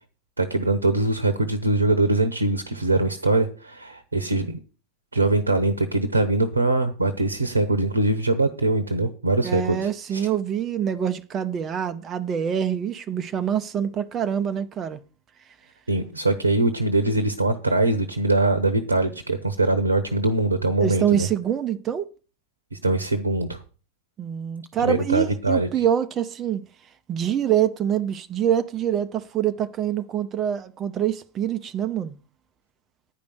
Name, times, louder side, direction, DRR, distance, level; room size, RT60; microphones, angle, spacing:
voice 1, 0.4-4.6 5.1-10.3 15.9-21.3 22.7-23.6 24.8-25.7, right 2 dB, 80° right, 1.0 m, -22 dB
voice 2, 9.4-15.0 20.8-22.1 24.2-26.6 27.1-32.2, right 9 dB, 25° right, 0.8 m, -25 dB
10.0 x 5.2 x 8.0 m
figure-of-eight pair, 90°, 0 cm